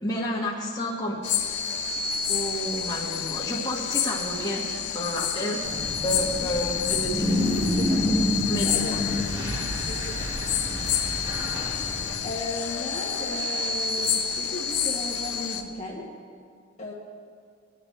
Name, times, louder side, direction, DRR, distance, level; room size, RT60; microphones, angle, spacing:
voice 1, 0.0-1.2 2.3-5.6 6.0-7.3 8.5-9.0, equal, 20° left, -5 dB, 1.6 m, -30 dB
sound 1, 1.2-15.6, left 7 dB, 65° left, 0.9 m, -29 dB
sound 2, 5.6-12.2, equal, 20° right, 1.6 m, -28 dB
voice 2, 6.4-6.7 7.6-9.1 9.8-10.3 12.2-16.0 16.8-16.9, left 2 dB, 40° left, -3 dB, 1.6 m, -36 dB
20.5 x 9.5 x 3.3 m, 2.3 s
head